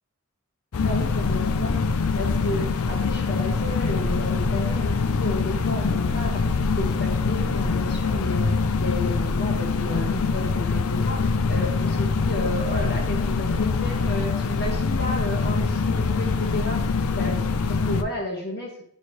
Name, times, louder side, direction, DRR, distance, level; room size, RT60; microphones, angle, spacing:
sound 1, 0.7-18.0, left 4 dB, 70° left, 0.5 m, -24 dB
voice 1, 0.8-18.7, left 1 dB, 50° left, -2 dB, 2.0 m, -32 dB
9.9 x 4.3 x 3.2 m, 0.63 s
head